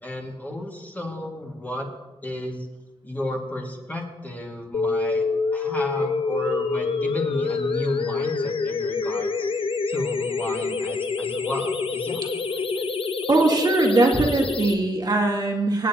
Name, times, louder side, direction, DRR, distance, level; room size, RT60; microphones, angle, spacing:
voice 1, 0.0-1.9 2.2-2.7 3.0-5.2 5.5-9.5 9.9-12.8, left 1 dB, 15° left, -1 dB, 2.0 m, -33 dB
sound 1, 4.7-14.7, left 4 dB, 65° left, 0.8 m, -26 dB
voice 2, 13.3-15.9, right 2 dB, 40° right, 1 dB, 1.7 m, -20 dB
25.0 x 9.1 x 2.9 m, 1.1 s
wide cardioid pair, 155°, 10 cm